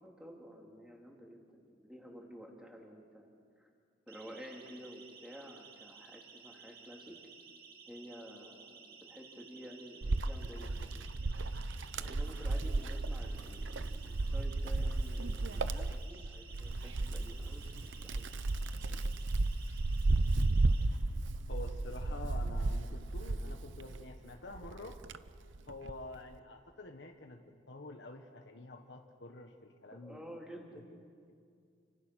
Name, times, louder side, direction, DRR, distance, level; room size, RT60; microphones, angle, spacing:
voice 1, 0.0-3.3 3.6-3.7 4.1-7.1 7.8-11.1 11.9-18.3 18.9-19.0 29.9-30.8, equal, 5° right, -1 dB, 3.3 m, -51 dB
Siren, 4.1-20.8, right 5 dB, 50° right, 2.5 m, -55 dB
Wind, 10.0-24.1 24.6-26.1, right 2 dB, 80° right, 0.8 m, -34 dB
voice 2, 21.5-25.0 25.6-30.2, left 2 dB, 70° left, 4 dB, 1.4 m, -48 dB
30.0 x 25.0 x 6.4 m, 2.2 s
head